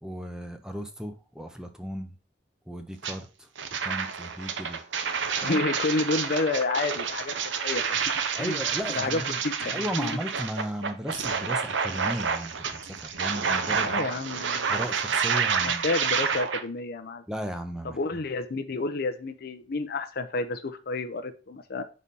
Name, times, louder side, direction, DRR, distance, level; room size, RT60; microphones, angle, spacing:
voice 1, 0.0-2.2 2.7-3.5 3.8-4.8 5.4-5.6 8.4-9.4 9.7-14.1 14.7-15.9 17.3-18.0, equal, 5° right, 6 dB, 0.6 m, -35 dB
sound 1, 3.0-3.1 3.6-16.6, right 6 dB, 75° right, 0.8 m, -29 dB
voice 2, 5.4-7.3 7.6-8.0 8.4-8.6 8.9-10.2 13.8-14.8 15.6-17.2 17.8-21.8, left 3 dB, 55° left, 8 dB, 0.6 m, -30 dB
4.8 x 4.2 x 5.3 m, 0.35 s
head